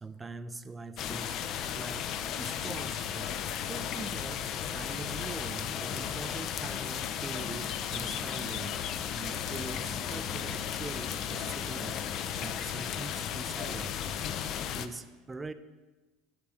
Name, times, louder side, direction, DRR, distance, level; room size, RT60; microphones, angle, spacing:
voice 1, 0.0-1.4 1.7-2.1 2.4-4.5 4.7-8.8 9.1-14.1 14.8-15.5, right 3 dB, 20° right, 12 dB, 0.4 m, -43 dB
sound 1, 1.0-14.9, left 9 dB, 50° left, 0.4 m, -35 dB
7.4 x 3.4 x 6.1 m, 1.2 s
figure-of-eight pair, 75°, 0 cm